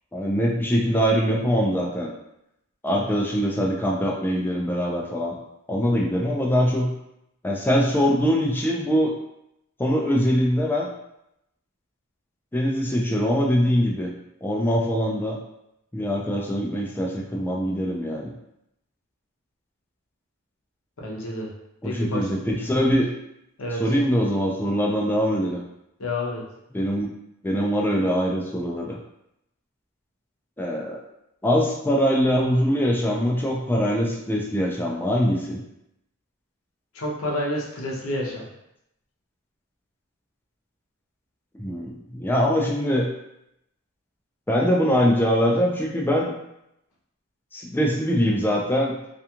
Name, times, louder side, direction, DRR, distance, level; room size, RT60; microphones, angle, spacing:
voice 1, 0.1-2.1 2.8-5.4 5.7-6.9 7.4-9.1 9.8-10.9 12.5-14.1 14.4-15.4 15.9-18.3 21.8-23.1 23.8-25.6 26.7-27.1 27.4-29.0 30.6-31.0 31.4-35.6 41.6-43.1 44.5-46.3 47.5-49.1, equal, 10° left, -2 dB, 0.4 m, -23 dB
voice 2, 21.0-21.5 21.8-22.3 23.6-23.8 26.0-26.4 36.9-38.5, left 1 dB, 70° left, -2 dB, 0.7 m, -29 dB
2.4 x 2.3 x 2.8 m, 0.82 s
head